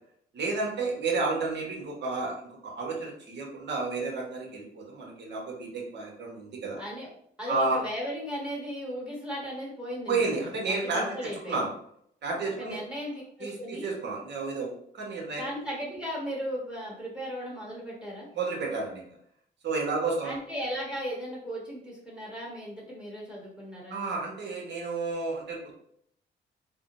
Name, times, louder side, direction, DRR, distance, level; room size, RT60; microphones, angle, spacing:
voice 1, 0.3-6.8 7.5-7.8 10.1-11.7 12.2-12.8 13.4-15.5 18.3-19.1 19.6-20.4 23.9-25.7, right 3 dB, 60° right, -1 dB, 1.2 m, -31 dB
voice 2, 6.8-7.1 7.4-10.4 10.8-11.6 12.4-13.9 15.4-18.3 20.2-24.0, equal, 5° right, -4 dB, 1.2 m, -36 dB
3.5 x 2.2 x 2.6 m, 0.68 s
cardioid pair, 90°, 20 cm